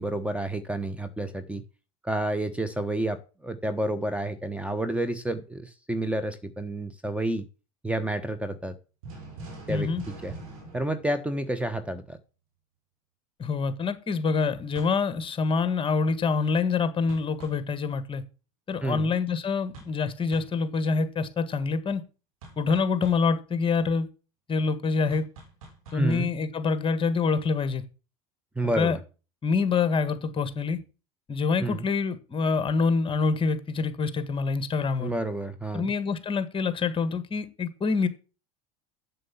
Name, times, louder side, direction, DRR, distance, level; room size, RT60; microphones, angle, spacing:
voice 1, 0.0-1.6 2.0-7.5 7.8-8.8 9.7-9.9 10.2-10.3 10.7-12.2 18.8-19.1 25.9-26.3 28.6-29.0 31.6-31.8 35.0-35.9, right 1 dB, 5° right, 1.1 m, -29 dB
sound 1, 9.0-11.9 14.8-15.1 17.1-17.7 19.7-20.0 20.3-20.6 22.4-23.3 25.1-26.4, right 3 dB, 85° right, 4.2 m, -44 dB
voice 2, 9.7-10.0 13.4-18.2 18.7-22.0 22.6-24.1 24.5-25.3 25.9-27.8 28.6-29.0 29.4-30.8 31.3-35.1 35.7-38.1, left 4 dB, 30° left, 1.5 m, -26 dB
7.6 x 6.8 x 7.1 m
hypercardioid pair, 85°, 17 cm